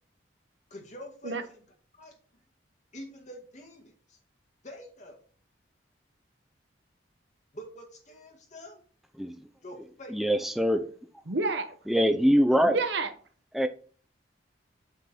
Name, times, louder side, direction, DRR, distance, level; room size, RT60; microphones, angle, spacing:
voice 1, 0.7-1.4 2.0-2.1 2.9-4.2 4.6-5.2 7.5-8.8 9.6-10.2, left 1 dB, 40° left, 1 dB, 1.9 m, -45 dB
voice 2, 10.1-10.8 11.9-12.8 13.5-13.7, equal, ahead, 6 dB, 0.5 m, -23 dB
voice 3, 11.3-11.8 12.6-13.1, right 3 dB, 70° right, 9 dB, 0.9 m, -29 dB
8.2 x 3.9 x 4.4 m, 0.43 s
head